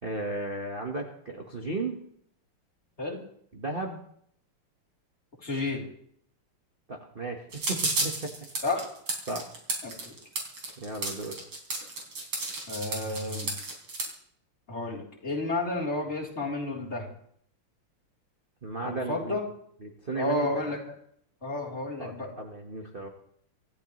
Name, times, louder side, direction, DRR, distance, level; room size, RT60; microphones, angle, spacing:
voice 1, 0.0-2.0 3.5-4.0 6.9-7.4 7.7-8.3 9.3-9.4 10.8-11.4 18.6-19.4 19.8-20.5 22.0-23.1, right 2 dB, 30° right, 1 dB, 1.4 m, -34 dB
voice 2, 5.4-5.8 8.6-8.8 9.8-10.1 12.7-13.6 14.7-17.1 18.8-19.4 20.2-20.8 21.4-22.3, left 2 dB, 30° left, -1 dB, 4.0 m, -31 dB
sound 1, 7.5-14.1, right 2 dB, 80° right, 4.9 m, -32 dB
25.5 x 15.0 x 3.2 m, 0.66 s
omnidirectional pair, 2.4 m